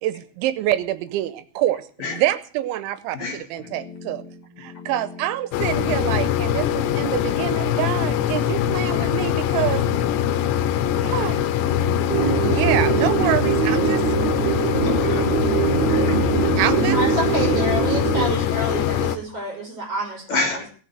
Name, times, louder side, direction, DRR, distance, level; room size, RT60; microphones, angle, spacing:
voice 1, 0.0-4.2 4.6-9.8 11.0-11.4 12.4-14.1 16.6-17.0, right 13 dB, 80° right, 14 dB, 3.0 m, -26 dB
voice 2, 3.1-3.7 8.9-9.1 12.1-12.4 14.8-15.3 15.9-16.5 19.3-19.5 20.3-20.7, left 3 dB, 60° left, 3 dB, 2.0 m, -30 dB
sound 1, 3.4-17.1, left 5 dB, 30° left, 4.4 m, -41 dB
sound 2, 5.5-19.2, left 10 dB, 80° left, 2.9 m, -23 dB
sound 3, 12.1-18.3, right 8 dB, 60° right, 2.2 m, -23 dB
voice 3, 16.8-20.5, right 2 dB, 30° right, 0 dB, 6.7 m, -28 dB
18.0 x 6.8 x 7.9 m, 0.42 s
omnidirectional pair, 5.5 m